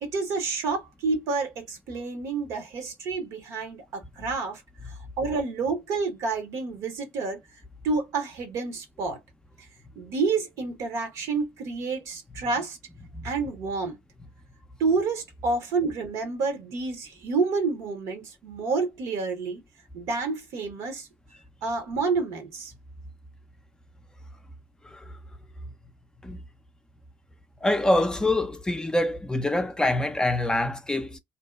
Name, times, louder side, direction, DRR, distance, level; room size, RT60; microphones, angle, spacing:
voice 1, 0.0-4.6 5.2-7.4 7.8-9.2 10.0-12.8 13.2-14.0 14.8-19.6 19.9-21.1 21.6-22.7, right 4 dB, 65° right, 0.9 m, -29 dB
voice 2, 24.8-25.2 26.2-26.4 27.6-31.2, left 1 dB, 15° left, 0.5 m, -25 dB
2.7 x 2.1 x 2.3 m
hypercardioid pair, 60°, 6 cm